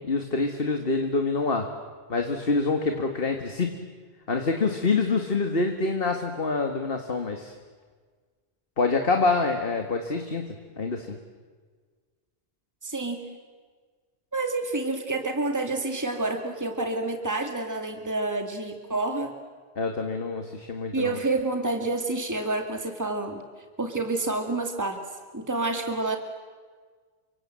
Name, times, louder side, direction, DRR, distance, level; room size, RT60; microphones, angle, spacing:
voice 1, 0.1-1.7 2.1-3.7 4.3-7.5 8.8-11.2 19.8-21.2, left 3 dB, 65° left, 4 dB, 2.1 m, -26 dB
voice 2, 12.8-13.3 14.3-19.4 20.9-23.4 23.8-25.0 25.3-26.2, right 2 dB, 15° right, 4 dB, 2.2 m, -28 dB
30.0 x 25.5 x 7.7 m, 1.5 s
omnidirectional pair, 1.1 m